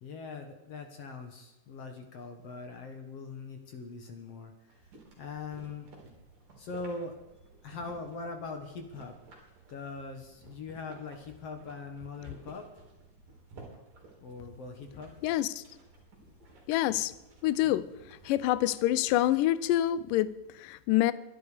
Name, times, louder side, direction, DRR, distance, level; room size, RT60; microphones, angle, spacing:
voice 1, 0.0-4.9 5.2-5.9 6.6-7.1 7.6-9.2 9.7-12.7 14.2-15.1, left 4 dB, 55° left, 5 dB, 2.0 m, -41 dB
sound 1, 4.7-19.3, right 3 dB, 65° right, 5.3 m, -55 dB
voice 2, 15.2-15.6 16.7-17.1 17.4-17.8 18.3-21.1, left 14 dB, 80° left, 16 dB, 2.1 m, -26 dB
23.0 x 11.0 x 5.1 m, 0.97 s
omnidirectional pair, 4.2 m